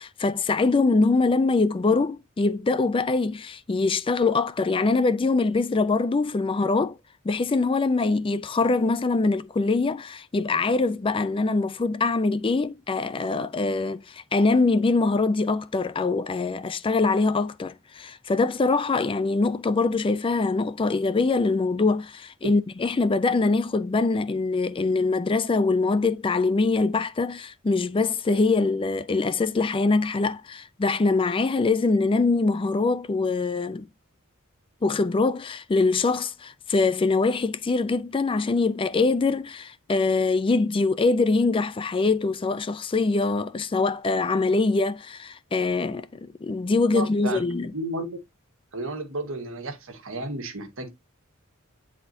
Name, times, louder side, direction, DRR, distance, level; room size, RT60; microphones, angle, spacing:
voice 1, 0.0-7.0 7.2-33.9 34.8-47.7, left 3 dB, 25° left, 0.4 m, -23 dB
voice 2, 46.9-47.4 47.7-48.2 48.7-50.9, right 2 dB, 70° right, 1.6 m, -32 dB
9.0 x 4.2 x 2.6 m
head